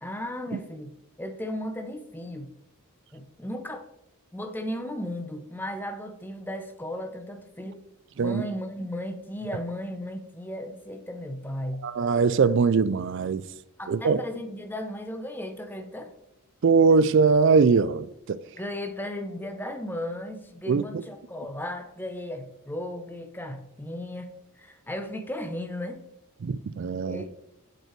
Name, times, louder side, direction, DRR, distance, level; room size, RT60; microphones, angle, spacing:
voice 1, 0.0-2.5 3.1-3.9 4.3-7.8 8.2-11.9 13.8-16.1 18.6-24.3 24.6-26.0 27.1-27.3, left 1 dB, 10° left, 0.7 m, -35 dB
voice 2, 11.8-13.4 13.9-14.2 16.6-18.4 20.7-20.8 26.4-27.2, right 5 dB, 55° right, 0.4 m, -21 dB
7.8 x 4.6 x 4.6 m
head